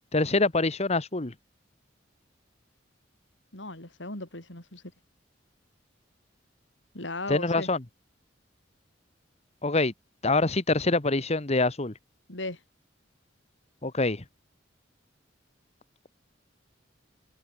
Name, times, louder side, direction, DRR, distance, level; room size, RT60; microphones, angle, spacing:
voice 1, 0.1-1.3 7.3-7.8 9.6-9.9 10.2-11.9 13.8-14.2, left 2 dB, 35° left, 1.4 m, -25 dB
voice 2, 3.5-4.8 6.9-7.7 12.3-12.6, left 2 dB, 75° left, 7.0 m, -37 dB
head